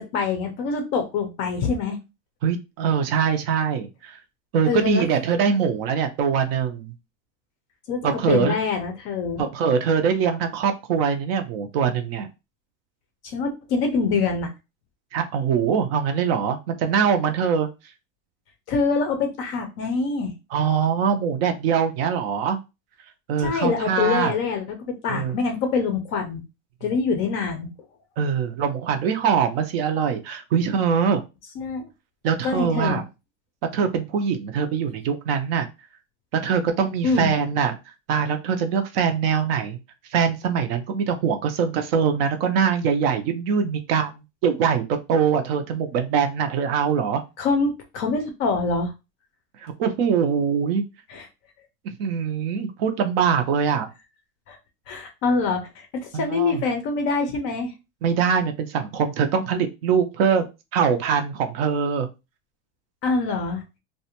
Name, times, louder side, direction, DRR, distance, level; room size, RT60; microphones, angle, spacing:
voice 1, 0.0-2.0 4.7-5.0 7.9-9.4 13.2-14.5 18.7-20.3 23.4-26.4 26.8-27.7 31.6-31.9 32.4-33.0 37.0-37.3 47.4-48.9 51.1-51.3 54.5-54.6 54.9-57.7 63.0-63.6, left 4 dB, 35° left, 4 dB, 0.4 m, -25 dB
voice 2, 2.4-4.2 4.5-6.9 8.0-8.6 9.4-12.3 15.1-17.7 20.5-22.6 23.3-24.3 25.1-25.4 28.2-31.2 32.2-33.0 33.7-35.7 36.3-39.8 40.1-47.2 49.6-50.8 51.8-53.9 56.1-56.6 58.0-60.4 60.7-62.1, right 7 dB, 50° right, 6 dB, 0.4 m, -23 dB
2.4 x 2.1 x 2.8 m, 0.26 s
supercardioid pair, 145°, 39 cm